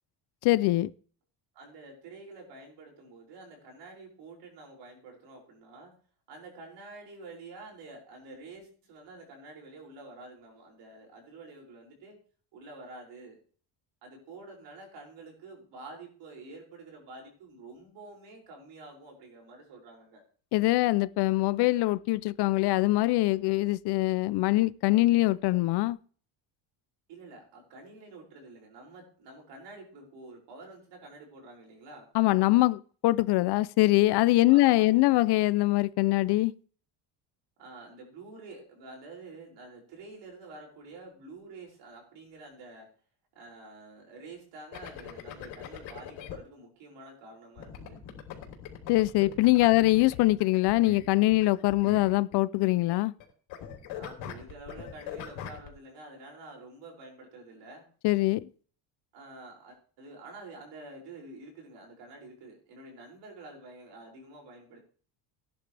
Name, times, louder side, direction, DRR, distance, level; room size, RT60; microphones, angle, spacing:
voice 1, 0.4-0.9 20.5-26.0 32.1-36.5 48.9-53.1 58.0-58.5, left 19 dB, 60° left, 0.6 m, -23 dB
voice 2, 1.5-5.9 6.3-12.2 12.5-13.4 14.0-20.2 27.1-32.1 34.5-35.2 37.6-42.9 43.3-48.0 49.6-49.8 53.9-57.9 59.1-64.8, right 3 dB, 65° right, 6.2 m, -48 dB
sound 1, 44.7-46.4 47.6-52.7 52.9-53.2 53.5-55.7, left 9 dB, 75° left, 3.7 m, -42 dB
17.5 x 10.5 x 3.4 m
cardioid pair, 175°, 46 cm